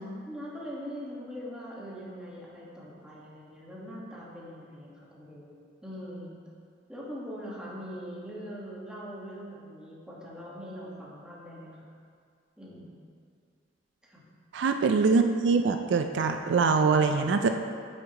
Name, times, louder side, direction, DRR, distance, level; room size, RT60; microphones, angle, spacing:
voice 1, 0.3-5.6 5.8-6.3 6.9-11.9 12.6-13.0 14.1-14.2, equal, 5° right, -6 dB, 1.3 m, -42 dB
voice 2, 14.5-17.6, right 4 dB, 75° right, 6 dB, 0.4 m, -23 dB
8.7 x 6.4 x 2.9 m, 2.3 s
head